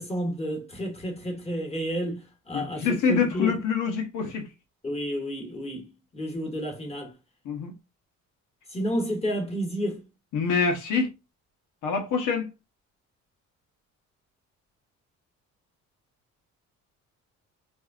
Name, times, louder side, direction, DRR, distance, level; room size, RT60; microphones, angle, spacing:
voice 1, 0.0-3.6 4.8-7.1 8.7-10.0, equal, 20° left, 2.0 m, -31 dB
voice 2, 2.5-4.5 7.4-7.7 10.3-11.1 11.8-12.5, left 5 dB, 85° left, 1.0 m, -25 dB
4.6 x 2.7 x 2.4 m
cardioid pair, 90°, 30 cm